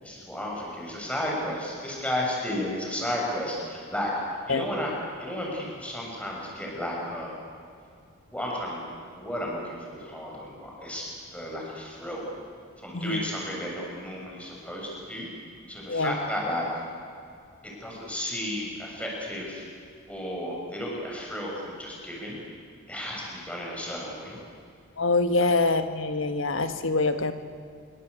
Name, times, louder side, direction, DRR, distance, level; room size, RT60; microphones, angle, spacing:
voice 1, 0.0-4.1 4.5-4.9 5.2-7.3 8.3-8.8 9.2-11.1 11.3-12.3 12.8-15.3 15.7-16.8 17.6-19.6 20.1-22.4 22.9-24.4, left 1 dB, 5° left, -3 dB, 7.1 m, -33 dB
voice 2, 12.9-13.2 15.9-16.2 25.0-27.3, left 3 dB, 60° left, 8 dB, 1.7 m, -25 dB
27.0 x 24.0 x 8.4 m, 2.4 s
head